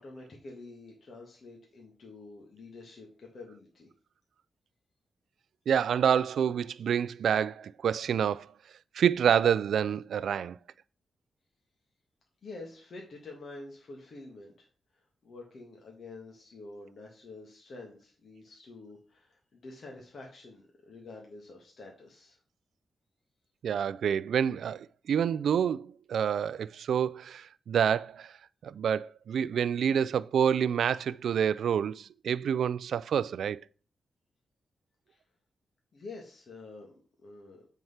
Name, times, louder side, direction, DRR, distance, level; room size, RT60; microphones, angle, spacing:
voice 1, 0.0-3.9 12.4-14.7 14.9-22.4 35.1-35.2 35.9-37.7, left 3 dB, 55° left, 1.9 m, -48 dB
voice 2, 5.7-8.5 8.9-10.6 23.6-28.3 28.6-33.6, right 8 dB, 80° right, 0.3 m, -28 dB
7.9 x 4.6 x 5.6 m
cardioid pair, 95°, 0 cm